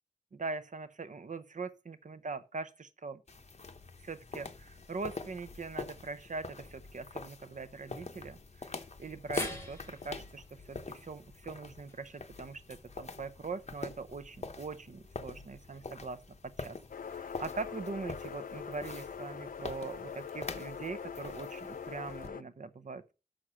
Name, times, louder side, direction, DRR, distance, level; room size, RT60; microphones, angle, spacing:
voice 1, 0.3-3.2 4.0-16.2 16.4-16.8 17.1-23.0, right 4 dB, 60° right, 0.7 m, -42 dB
sound 1, 3.3-22.3, left 4 dB, 50° left, 0.9 m, -45 dB
sound 2, 9.3-13.6 13.9-14.0 15.2-15.3, left 1 dB, 15° left, 2.9 m, -46 dB
sound 3, 16.9-22.4, left 7 dB, 75° left, 0.5 m, -43 dB
6.3 x 6.3 x 5.6 m
wide cardioid pair, 80°, 14 cm